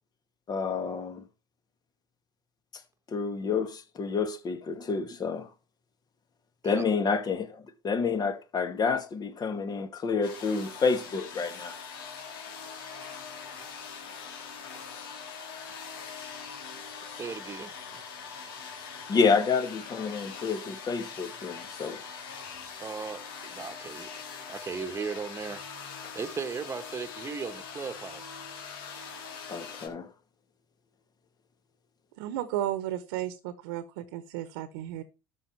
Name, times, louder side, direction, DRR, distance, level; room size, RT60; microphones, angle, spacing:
voice 1, 0.5-1.2 3.1-5.5 6.6-11.8 19.1-22.0 26.0-26.1 29.5-30.1, left 5 dB, 35° left, 2.1 m, -29 dB
sound 1, 10.2-29.9, left 6 dB, 80° left, 3.9 m, -42 dB
voice 2, 17.1-17.8 22.8-24.1 24.5-28.4, right 5 dB, 25° right, 1.4 m, -37 dB
voice 3, 32.2-35.0, right 12 dB, 75° right, 1.2 m, -34 dB
12.5 x 6.4 x 4.6 m
hypercardioid pair, 85°, 12 cm